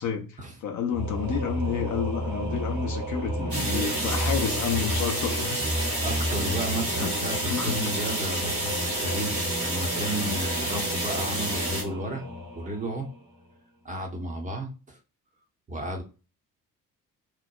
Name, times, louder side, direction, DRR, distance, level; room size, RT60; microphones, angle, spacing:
voice 1, 0.0-5.6 7.0-7.1 7.5-8.0 10.7-10.9, left 7 dB, 40° left, 0.5 m, -30 dB
Singing / Musical instrument, 0.9-13.5, equal, 60° right, 1.0 m, -32 dB
voice 2, 3.4-4.0 6.0-12.2 12.5-13.1 13.8-15.0 15.7-16.0, right 1 dB, 15° right, 0.6 m, -33 dB
sound 1, 3.5-11.8, right 1 dB, 80° right, 1.1 m, -30 dB
3.0 x 2.0 x 2.2 m
figure-of-eight pair, 45°, 48 cm